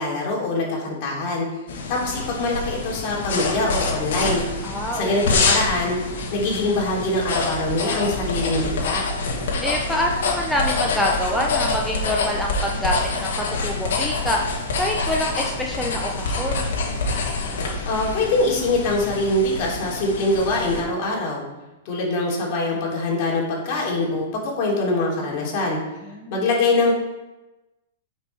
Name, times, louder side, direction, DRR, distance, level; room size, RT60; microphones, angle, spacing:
voice 1, 0.0-1.5 1.9-4.4 4.9-6.0 6.3-9.0 17.8-21.4 21.8-25.8 26.3-27.0, left 2 dB, 45° left, -2 dB, 3.2 m, -23 dB
sound 1, 1.7-20.8, left 3 dB, 70° left, 2.2 m, -26 dB
voice 2, 4.6-5.5 9.6-14.4 14.8-16.7 26.1-26.5, equal, ahead, -2 dB, 0.8 m, -26 dB
9.7 x 5.5 x 4.7 m, 1.1 s
hypercardioid pair, 145°, 0 cm